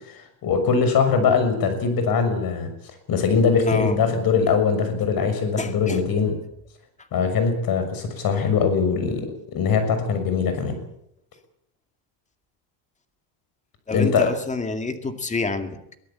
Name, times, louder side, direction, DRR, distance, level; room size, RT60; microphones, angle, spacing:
voice 1, 0.1-2.7 3.1-6.3 7.1-10.8 13.9-14.3, left 5 dB, 45° left, 8 dB, 6.5 m, -22 dB
voice 2, 3.7-4.0 5.6-6.0 13.9-16.0, left 3 dB, 15° left, 7 dB, 2.2 m, -28 dB
23.5 x 16.5 x 8.6 m, 0.77 s
cardioid pair, 140°, 49 cm